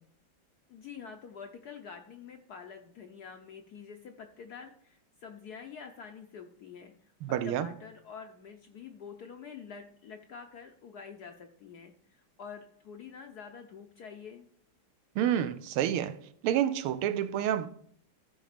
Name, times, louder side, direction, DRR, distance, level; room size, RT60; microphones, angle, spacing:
voice 1, 0.7-14.5, left 6 dB, 70° left, 1.0 m, -47 dB
voice 2, 7.2-7.7 15.2-16.2 16.4-17.7, right 10 dB, 80° right, 1.5 m, -28 dB
13.5 x 5.1 x 5.0 m
omnidirectional pair, 2.4 m